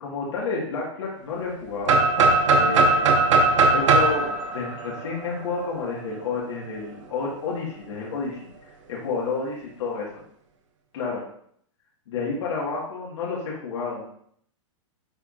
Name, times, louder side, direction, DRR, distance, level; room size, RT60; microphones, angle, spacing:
voice 1, 0.0-2.0 2.5-10.2 10.9-11.2 12.1-14.1, left 4 dB, 60° left, -4 dB, 1.7 m, -30 dB
sound 1, 1.9-5.7, right 3 dB, 70° right, 1.3 m, -19 dB
9.6 x 4.5 x 2.5 m, 0.65 s
supercardioid pair, 170°, 17 cm